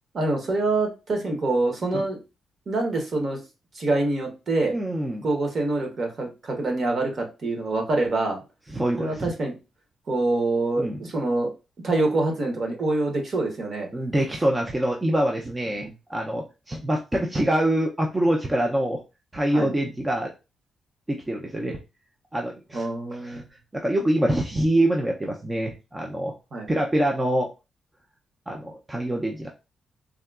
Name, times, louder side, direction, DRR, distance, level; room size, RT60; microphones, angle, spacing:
voice 1, 0.1-2.2 2.7-3.4 3.7-4.7 5.2-8.4 9.0-9.6 10.1-11.5 11.8-13.9 15.8-15.9 19.5-19.7 22.7-23.4 26.5-26.7, right 2 dB, 40° right, 2 dB, 0.8 m, -25 dB
voice 2, 4.7-5.3 8.7-9.3 10.8-11.0 13.9-19.0 19.3-20.3 21.1-21.8 22.3-23.4 23.7-26.3 26.7-27.5 28.5-29.5, right 1 dB, 15° right, 1 dB, 0.3 m, -25 dB
3.5 x 2.2 x 2.2 m, 0.28 s
wide cardioid pair, 160°, 0 cm